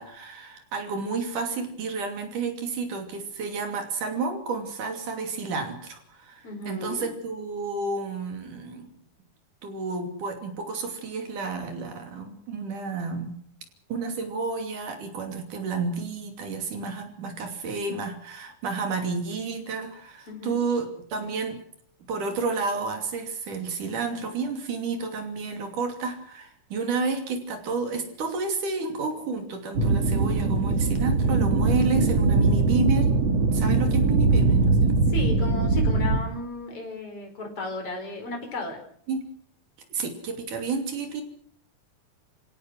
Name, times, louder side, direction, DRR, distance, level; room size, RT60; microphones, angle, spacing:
voice 1, 0.0-8.9 9.6-13.3 13.9-21.6 22.1-33.2 33.5-34.9 39.1-39.3 39.9-41.2, right 4 dB, 75° right, 5 dB, 4.4 m, -31 dB
voice 2, 6.4-7.1 20.3-20.6 35.1-38.8, left 3 dB, 45° left, 3 dB, 5.5 m, -34 dB
sound 1, 29.7-36.2, right 3 dB, 55° right, 3.2 m, -21 dB
28.0 x 17.0 x 6.2 m, 0.62 s
omnidirectional pair, 3.6 m